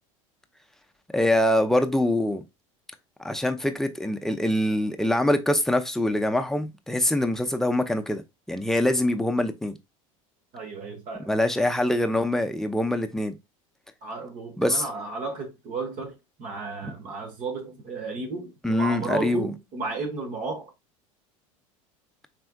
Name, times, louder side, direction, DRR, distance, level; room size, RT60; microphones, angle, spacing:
voice 1, 1.1-2.4 3.2-8.2 8.5-9.7 11.3-13.3 14.6-14.9 16.8-16.9 18.6-19.5, left 1 dB, ahead, 0.6 m, -24 dB
voice 2, 10.5-11.3 14.0-20.7, right 4 dB, 50° right, 1.1 m, -33 dB
4.3 x 3.4 x 2.2 m
hypercardioid pair, 85°, 17 cm